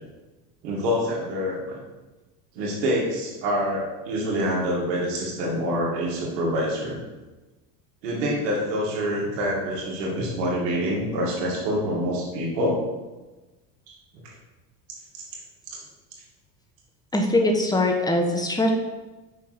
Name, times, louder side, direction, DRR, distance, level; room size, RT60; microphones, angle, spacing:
voice 1, 0.6-1.6 2.6-7.0 8.0-12.8, equal, 75° right, -3 dB, 2.5 m, -26 dB
voice 2, 17.1-18.7, left 1 dB, 10° left, 2 dB, 1.2 m, -22 dB
5.9 x 4.5 x 5.9 m, 1.2 s
hypercardioid pair, 80°, 48 cm